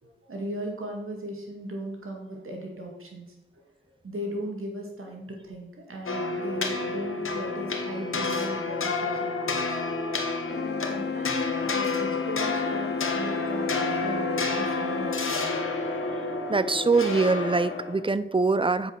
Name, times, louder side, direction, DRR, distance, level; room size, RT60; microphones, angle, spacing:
voice 1, 0.0-3.7 4.0-9.8 10.4-15.6, right 1 dB, 90° right, 0 dB, 2.0 m, -38 dB
sound 1, 6.1-18.0, left 3 dB, 85° left, 1.0 m, -30 dB
Wind instrument woodwind instrument, 10.4-15.4, left 6 dB, 55° left, 0.6 m, -33 dB
voice 2, 16.5-18.9, right 3 dB, 25° right, 14 dB, 0.6 m, -23 dB
8.2 x 5.4 x 5.7 m, 0.98 s
cardioid pair, 40°, 21 cm